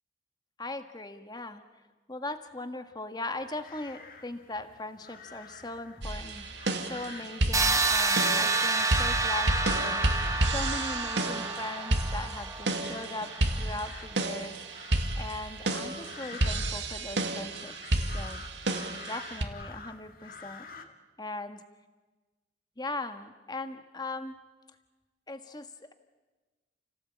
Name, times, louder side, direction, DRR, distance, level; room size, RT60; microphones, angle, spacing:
voice 1, 0.6-1.6 2.1-6.4 6.9-10.0 10.5-14.5 15.1-17.7 18.1-18.4 19.1-20.9 21.2-21.6 22.8-24.4 25.3-25.9, left 2 dB, 25° left, 8 dB, 1.6 m, -39 dB
sound 1, 3.4-20.8, left 5 dB, 55° left, 2.0 m, -46 dB
sound 2, 6.0-19.4, right 1 dB, 90° right, 2.3 m, -31 dB
sound 3, 7.5-13.3, right 3 dB, 20° right, 1.4 m, -29 dB
30.0 x 17.5 x 8.7 m, 1.2 s
head